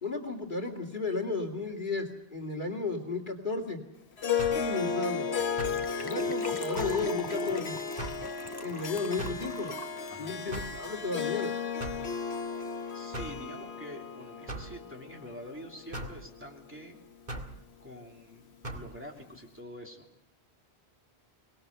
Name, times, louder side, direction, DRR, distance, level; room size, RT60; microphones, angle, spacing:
voice 1, 0.0-3.8 4.5-5.3 6.0-7.8 8.6-9.7 10.1-11.6, left 3 dB, 50° left, 4 dB, 2.6 m, -34 dB
Harp, 4.2-16.7, left 6 dB, 70° left, 1.5 m, -34 dB
sound 1, 4.4-4.7 5.6-5.9 6.8-7.1 8.0-8.3 9.2-9.5 10.5-10.8 11.8-12.1 13.1-13.4 14.5-14.7 15.9-16.2 17.3-17.5 18.6-18.9, right 2 dB, 45° right, 2.3 m, -38 dB
Gurgling / Trickle dribble / Fill (with liquid), 5.4-11.6 11.9-12.0 12.2-12.4 12.7-12.8, left 2 dB, 25° left, 1.0 m, -46 dB
voice 2, 12.9-17.0 17.8-20.0, equal, 10° right, -1 dB, 3.0 m, -46 dB
24.0 x 20.0 x 6.7 m, 0.80 s
omnidirectional pair, 1.1 m